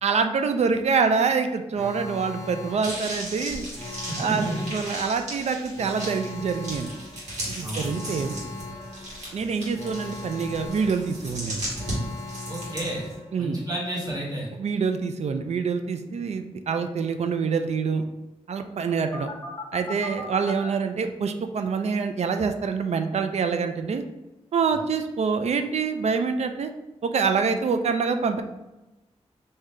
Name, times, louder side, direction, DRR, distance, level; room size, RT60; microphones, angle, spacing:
voice 1, 0.0-3.7 4.2-6.9 7.5-8.3 9.3-11.6 13.3-13.6 14.6-18.0 18.5-19.3 19.7-24.0 24.5-26.7 27.0-28.4, right 5 dB, 70° right, 7 dB, 0.4 m, -26 dB
Alarm, 1.8-13.7 19.1-20.7, left 3 dB, 25° left, 0.7 m, -39 dB
sound 1, 2.8-13.1, right 1 dB, 85° right, 1.5 m, -36 dB
voice 2, 4.1-4.6 7.6-8.0 12.5-13.1 13.4-14.5, right 1 dB, 30° right, -5 dB, 1.2 m, -31 dB
3.7 x 2.7 x 3.2 m, 1.0 s
wide cardioid pair, 130°, 12 cm